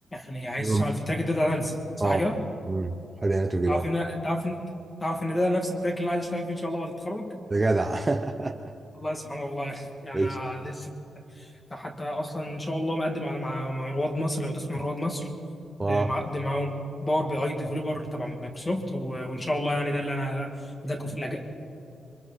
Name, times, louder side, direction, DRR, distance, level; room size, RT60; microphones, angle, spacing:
voice 1, 0.1-1.8 2.0-2.4 3.7-4.7 5.0-7.3 9.0-10.9 11.4-11.5 11.7-15.3 15.9-20.5 20.8-21.4, left 1 dB, 15° left, 2 dB, 2.2 m, -29 dB
voice 2, 3.2-3.9 7.5-8.7 10.1-10.4 15.8-16.1, right 2 dB, 20° right, 5 dB, 0.7 m, -25 dB
27.0 x 24.0 x 4.2 m, 2.6 s
wide cardioid pair, 160°, 0 cm